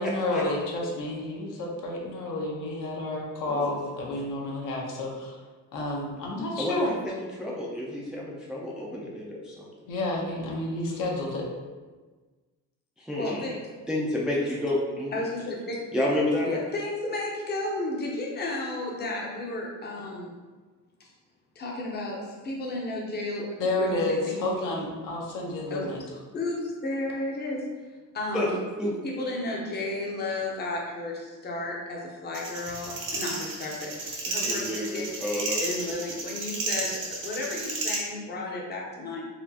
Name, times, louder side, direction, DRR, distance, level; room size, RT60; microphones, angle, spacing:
voice 1, 0.0-5.4 5.7-6.9 9.9-11.5 23.6-26.0, left 2 dB, 65° left, -2 dB, 0.8 m, -30 dB
voice 2, 3.5-3.8 6.6-9.7 13.0-13.6 13.9-15.1 15.9-16.5 28.3-28.5 28.8-28.9 34.4-35.6, left 1 dB, ahead, -4 dB, 0.3 m, -30 dB
voice 3, 13.1-13.8 15.1-15.8 16.5-20.3 21.0-21.1 21.5-23.5 23.8-24.4 25.7-25.9 26.3-27.7 28.1-28.6 29.0-33.9 34.2-35.1 35.6-39.3, left 2 dB, 30° left, -2 dB, 0.7 m, -33 dB
sound 1, 32.3-38.0, right 3 dB, 65° right, 0.9 m, -32 dB
4.2 x 2.4 x 2.7 m, 1.3 s
cardioid pair, 140°, 34 cm